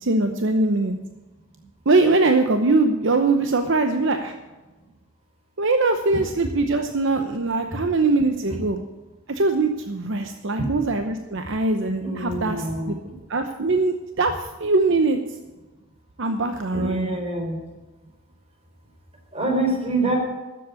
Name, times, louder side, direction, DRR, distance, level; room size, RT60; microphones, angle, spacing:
voice 1, 0.0-0.9 1.9-4.3 5.6-8.8 9.3-13.0 13.3-15.4 16.2-17.2, right 3 dB, 60° right, 6 dB, 0.8 m, -22 dB
voice 2, 12.0-13.0 16.7-17.6 19.3-20.2, right 2 dB, 30° right, 1 dB, 3.7 m, -26 dB
12.5 x 7.9 x 8.4 m, 1.2 s
head